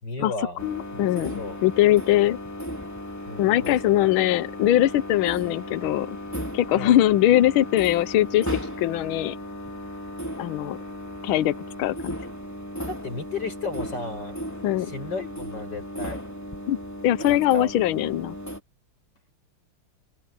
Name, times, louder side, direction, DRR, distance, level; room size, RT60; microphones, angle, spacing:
voice 1, 0.0-0.7 0.9-1.6 3.3-4.3 6.7-7.0 12.9-14.4 14.8-16.2 17.2-17.7, left 3 dB, 55° left, 6.0 m, -34 dB
voice 2, 0.6-2.4 3.4-6.2 6.5-8.5 8.8-9.4 10.4-10.8 11.2-12.1 14.6-14.9 16.7-16.8 17.0-18.4, left 13 dB, 75° left, 1.6 m, -21 dB
sound 1, 0.6-18.6, equal, 5° left, 3.4 m, -36 dB
open air
omnidirectional pair, 2.3 m